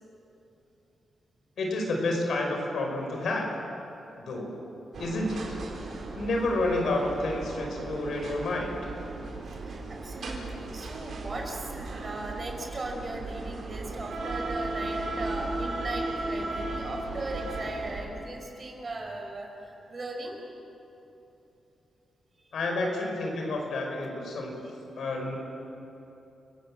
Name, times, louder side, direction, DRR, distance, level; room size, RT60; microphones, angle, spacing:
voice 1, 1.6-3.5 4.2-4.5 5.0-5.4 6.2-8.8 22.5-24.5 25.0-25.4, left 2 dB, 75° left, 1 dB, 5.4 m, -29 dB
sound 1, 4.9-18.0, right 2 dB, 70° right, 4.4 m, -36 dB
voice 2, 9.5-20.4 22.4-22.5, right 2 dB, 40° right, 1 dB, 5.4 m, -38 dB
30.0 x 18.0 x 7.6 m, 2.9 s
cardioid pair, 85°, 0 cm